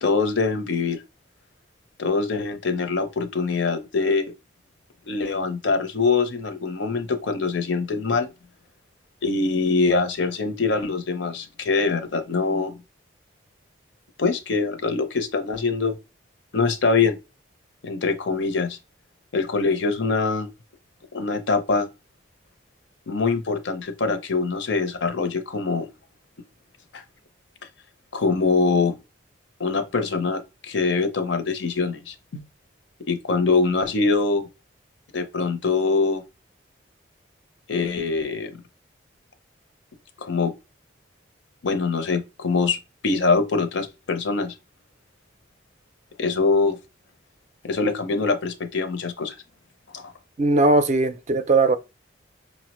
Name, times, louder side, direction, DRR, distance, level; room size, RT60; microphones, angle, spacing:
voice 1, 0.0-1.0 2.0-4.3 5.0-8.3 9.2-12.8 14.2-16.0 16.5-17.2 17.8-18.8 19.3-20.5 21.1-21.9 23.1-25.9 26.9-27.0 28.1-29.0 29.6-32.4 33.0-34.4 35.1-36.2 37.7-38.5 40.2-40.5 41.6-42.8 43.0-44.5 46.2-46.8 47.6-49.4 49.9-50.1, left 4 dB, 70° left, 0.6 m, -23 dB
voice 2, 50.4-51.8, right 2 dB, 40° right, 0.4 m, -19 dB
5.5 x 2.0 x 2.9 m
head